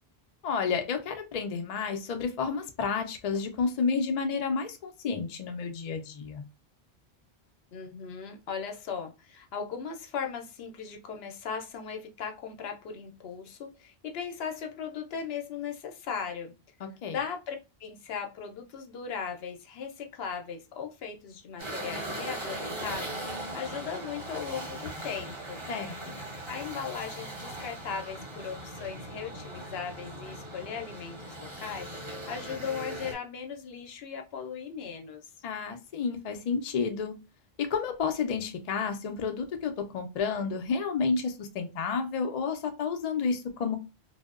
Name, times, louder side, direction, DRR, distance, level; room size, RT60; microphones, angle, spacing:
voice 1, 0.4-6.4 17.0-17.2 25.7-26.2 35.4-37.1 37.6-43.8, left 5 dB, 55° left, 6 dB, 0.4 m, -31 dB
voice 2, 7.7-16.5 17.1-25.9 26.5-35.2, left 6 dB, 75° left, 4 dB, 0.8 m, -38 dB
sound 1, 21.6-33.1, right 1 dB, 30° right, 0.8 m, -39 dB
2.7 x 2.0 x 2.3 m, 0.27 s
omnidirectional pair, 1.1 m